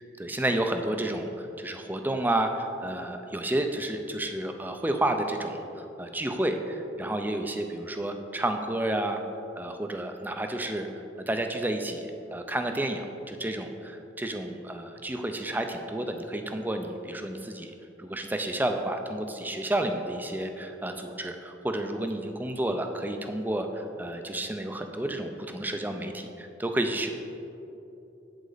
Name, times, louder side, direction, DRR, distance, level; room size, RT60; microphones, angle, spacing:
voice 1, 0.2-9.2 9.6-10.9 11.3-27.1, right 1 dB, 10° right, 5 dB, 0.4 m, -31 dB
8.1 x 7.8 x 4.0 m, 2.9 s
head